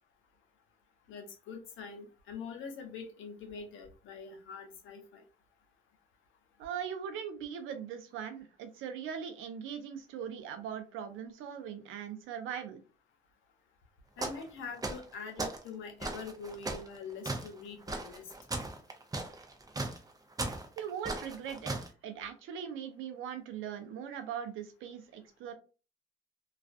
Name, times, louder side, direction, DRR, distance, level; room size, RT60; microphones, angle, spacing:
voice 1, 1.1-5.2 14.2-18.3, left 5 dB, 80° left, 4 dB, 0.7 m, -44 dB
voice 2, 6.6-12.8 20.8-21.8 22.0-25.5, right 8 dB, 90° right, 8 dB, 0.5 m, -40 dB
sound 1, 14.2-14.5 14.8-15.6 16.0-21.9, right 2 dB, 20° right, 0.5 m, -37 dB
2.4 x 2.4 x 2.4 m, 0.33 s
cardioid pair, 90°, 20 cm